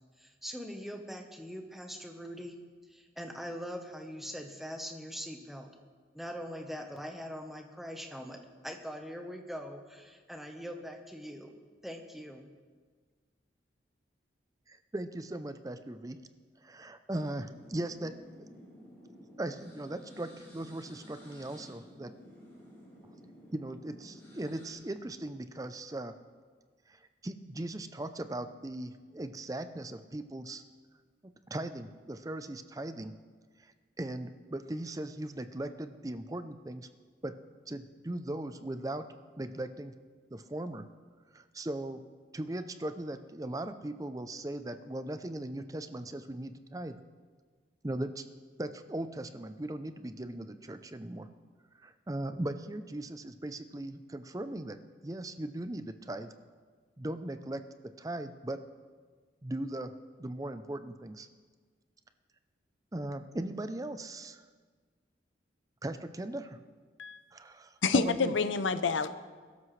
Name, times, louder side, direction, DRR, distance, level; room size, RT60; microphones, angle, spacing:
voice 1, 0.2-2.6 2.9-5.7 6.1-11.5 11.8-12.5, equal, ahead, 4 dB, 1.0 m, -42 dB
voice 2, 14.7-16.2 16.6-18.5 19.4-22.1 23.5-26.1 26.9-30.6 31.2-33.1 33.6-33.7 34.0-36.9 37.2-37.3 37.7-39.9 40.3-40.9 41.3-42.0 42.3-47.0 47.8-48.2 48.6-51.3 51.8-54.8 55.0-56.3 57.0-57.6 58.0-58.6 59.4-59.9 60.2-61.3 62.9-64.4 65.8-66.6 67.3-68.3, right 1 dB, 20° right, 10 dB, 0.5 m, -38 dB
sound 1, 17.1-24.7, equal, 15° left, 4.7 m, -53 dB
voice 3, 67.8-69.1, left 4 dB, 90° left, 12 dB, 0.7 m, -28 dB
21.5 x 12.5 x 3.3 m, 1.5 s
head